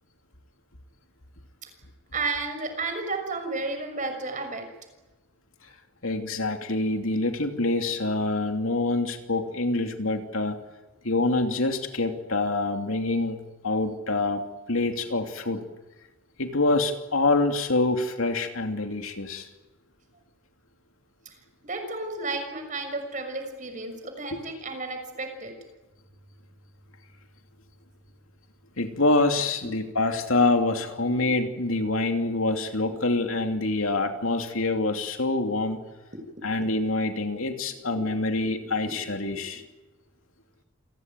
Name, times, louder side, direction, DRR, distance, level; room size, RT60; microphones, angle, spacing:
voice 1, 2.1-4.7 21.2-21.4 21.6-25.5, right 3 dB, 35° right, 5 dB, 6.3 m, -32 dB
voice 2, 6.0-10.6 11.0-15.7 16.4-19.5 24.3-24.4 28.8-35.8 36.4-39.6, left 2 dB, 75° left, 5 dB, 2.8 m, -26 dB
29.0 x 19.5 x 9.3 m, 1.1 s
head